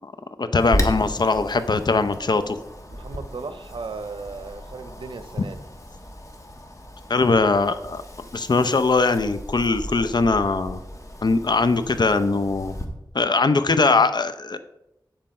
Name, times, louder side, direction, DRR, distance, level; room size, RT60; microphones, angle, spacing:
voice 1, 0.4-2.6 7.1-8.0 8.3-10.8 11.2-12.8 13.1-14.6, left 3 dB, 60° left, 10 dB, 0.7 m, -21 dB
Wind, 0.6-12.9, left 1 dB, 40° left, 1.4 m, -34 dB
voice 2, 2.9-5.6, right 4 dB, 85° right, 11 dB, 0.7 m, -36 dB
8.8 x 7.6 x 4.3 m, 0.92 s
wide cardioid pair, 50°, 8 cm